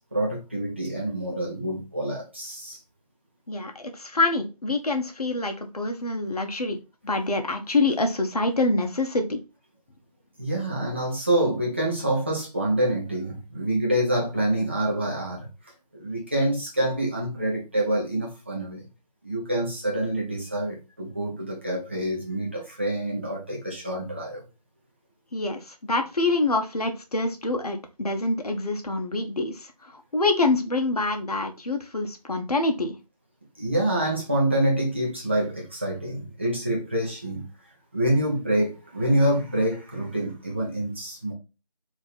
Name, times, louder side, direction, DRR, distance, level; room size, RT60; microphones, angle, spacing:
voice 1, 0.0-2.8 10.4-15.5 15.9-18.8 19.2-24.4 33.6-37.4 37.9-41.3, right 1 dB, 20° right, 0.6 m, -26 dB
voice 2, 3.5-6.8 7.0-9.4 25.3-33.0, left 2 dB, 65° left, 0.9 m, -26 dB
3.4 x 2.7 x 4.1 m
figure-of-eight pair, 170°, 21 cm